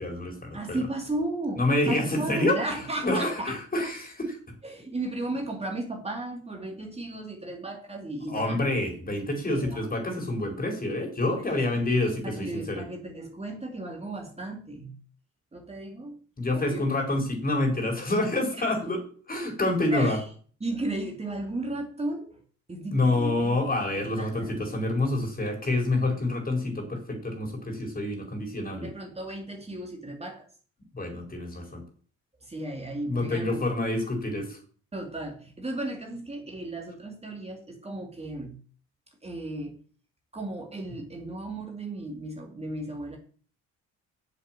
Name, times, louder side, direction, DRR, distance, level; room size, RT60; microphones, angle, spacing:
voice 1, 0.0-0.8 1.6-4.4 8.3-12.8 16.4-19.0 19.3-20.2 22.9-28.9 30.9-31.8 33.1-34.6, left 2 dB, 30° left, 3 dB, 4.5 m, -27 dB
voice 2, 0.5-3.6 4.6-8.6 9.5-9.9 11.3-11.9 12.2-15.0 15.5-16.2 16.5-16.9 18.6-18.7 19.9-20.3 20.6-22.4 22.7-23.6 24.2-24.6 28.8-30.4 32.4-33.6 34.9-38.6 39.2-39.7 40.3-43.2, right 2 dB, 20° right, 1 dB, 2.6 m, -35 dB
8.5 x 7.3 x 7.5 m, 0.43 s
cardioid pair, 90°, 30 cm